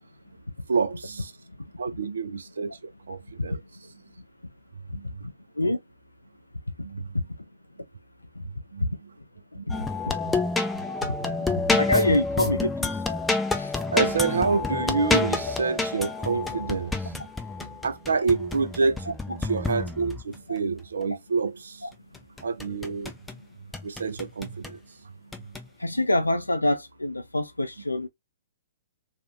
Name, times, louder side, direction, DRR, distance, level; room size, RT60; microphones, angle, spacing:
voice 1, 0.7-1.3 1.8-3.6 4.9-5.3 6.8-7.1 8.4-8.9 9.5-9.6 10.3-10.4 11.2-11.7 13.9-17.3 17.6-21.9 22.4-23.1 23.8-24.8 25.4-25.5, right 4 dB, 70° right, 0.5 m, -28 dB
sound 1, 9.7-20.4 22.1-23.4 23.7-24.8 25.3-25.6, left 3 dB, 5° left, 0.4 m, -28 dB
voice 2, 11.7-12.9 13.6-13.7 20.5-20.6 21.8-21.9 25.8-28.1, left 1 dB, 85° left, 0.5 m, -25 dB
2.6 x 2.3 x 2.5 m
figure-of-eight pair, 120°, 0 cm